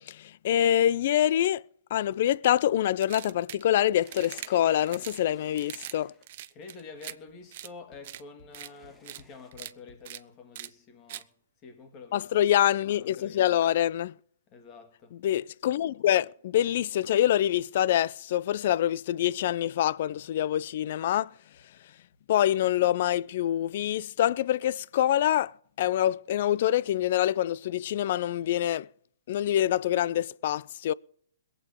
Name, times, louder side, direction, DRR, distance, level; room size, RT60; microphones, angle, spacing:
voice 1, 0.0-1.6 1.9-6.1 12.1-14.1 15.2-21.3 22.3-28.9 29.3-30.9, left 12 dB, 50° left, 0.5 m, -25 dB
sound 1, 3.0-3.6 4.1-4.5 4.9-5.2 5.6-6.0 6.2-7.1 7.5-7.7 8.0-8.2 8.5-8.7 9.0-9.2 9.5-9.7 10.1-10.2 10.6-10.7 11.1-11.2, right 13 dB, 50° right, 0.7 m, -41 dB
sound 2, 4.0-6.4 8.5-9.5, left 2 dB, 15° left, 1.7 m, -57 dB
voice 2, 6.5-11.3 11.6-12.3 13.0-13.6 14.5-15.2, left 4 dB, 30° left, 2.7 m, -48 dB
22.0 x 8.6 x 5.3 m
hypercardioid pair, 130°, 0 cm